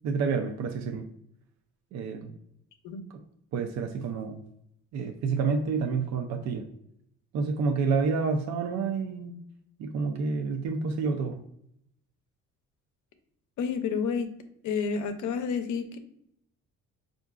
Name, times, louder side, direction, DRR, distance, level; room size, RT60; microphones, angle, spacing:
voice 1, 0.0-1.0 1.9-2.4 3.1-3.2 3.5-4.4 4.9-6.7 7.3-9.4 9.8-11.4, right 5 dB, 65° right, 4 dB, 0.4 m, -29 dB
voice 2, 13.6-14.3 14.6-16.0, left 6 dB, 80° left, 8 dB, 0.6 m, -30 dB
4.6 x 2.5 x 2.4 m, 0.72 s
cardioid pair, 115°, 30 cm